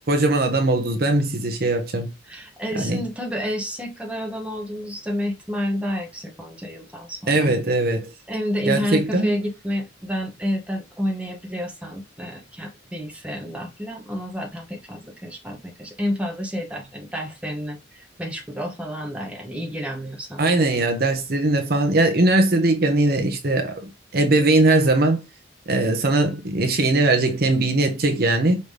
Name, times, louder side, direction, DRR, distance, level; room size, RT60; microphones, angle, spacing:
voice 1, 0.1-2.1 2.8-3.0 7.3-8.1 8.6-9.4 20.4-25.2 25.7-28.6, right 2 dB, 50° right, 0.9 m, -20 dB
voice 2, 2.3-7.5 8.3-20.4, equal, 5° right, 1.0 m, -30 dB
5.3 x 3.0 x 3.3 m
head